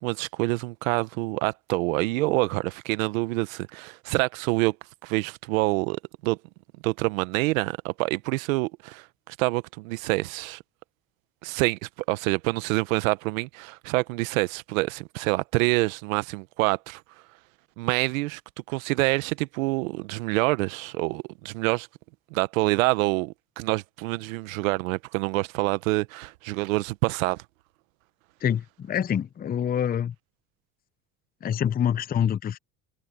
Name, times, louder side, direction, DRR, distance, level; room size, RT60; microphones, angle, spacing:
voice 1, 0.0-4.8 5.0-6.4 6.8-10.6 11.4-17.0 17.8-18.4 18.7-21.9 22.3-27.4, right 22 dB, 80° right, 1.1 m, -26 dB
voice 2, 28.4-30.1 31.4-32.6, left 9 dB, 25° left, 0.6 m, -26 dB
hypercardioid pair, 80°, 40 cm